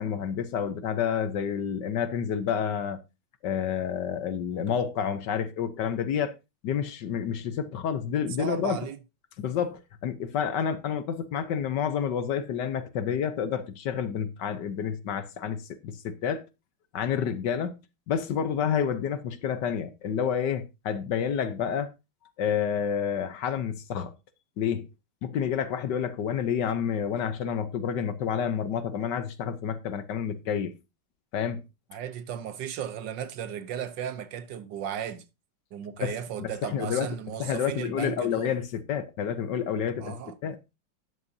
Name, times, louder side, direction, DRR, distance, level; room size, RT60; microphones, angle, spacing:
voice 1, 0.0-3.0 3.4-6.3 6.6-8.8 9.4-16.4 16.9-17.7 18.1-21.9 22.4-24.1 24.6-24.9 25.2-30.7 31.3-31.6 36.0-37.1 37.4-40.2 40.4-40.6, left 8 dB, 65° left, 1.3 m, -29 dB
voice 2, 8.4-9.0 31.9-35.2 35.7-38.5 40.0-40.3, right 9 dB, 70° right, 1.3 m, -35 dB
12.5 x 9.8 x 2.7 m
omnidirectional pair, 2.3 m